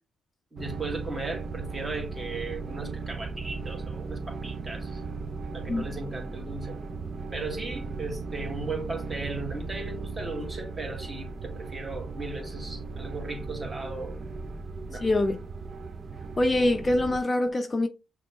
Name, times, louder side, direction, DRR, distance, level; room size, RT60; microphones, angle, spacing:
voice 1, 0.5-5.0 5.5-6.8 7.3-14.2 14.9-15.2, right 3 dB, 25° right, 1.4 m, -37 dB
sound 1, 0.6-17.2, right 4 dB, 40° right, 0.4 m, -37 dB
voice 2, 15.0-15.4 16.4-17.9, left 1 dB, 25° left, 0.4 m, -24 dB
5.9 x 2.3 x 3.0 m
cardioid pair, 90°, 0 cm